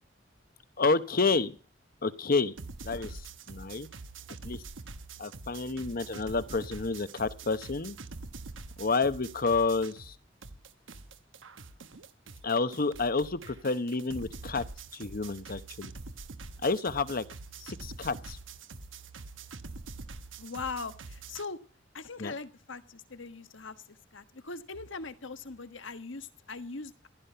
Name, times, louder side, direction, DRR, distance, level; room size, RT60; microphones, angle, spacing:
voice 1, 0.8-1.6 2.0-2.5 2.8-3.9 4.4-4.6 5.2-8.0 8.8-10.2 12.4-14.6 14.9-15.9 16.6-17.2 17.6-18.4 22.2-22.3, left 4 dB, 50° left, 13 dB, 0.9 m, -29 dB
sound 1, 2.6-10.2 10.4-21.5, right 3 dB, 90° right, 1.2 m, -45 dB
voice 2, 20.4-21.6 21.9-27.1, left 4 dB, 80° left, 10 dB, 1.4 m, -41 dB
15.5 x 12.0 x 5.7 m, 0.42 s
head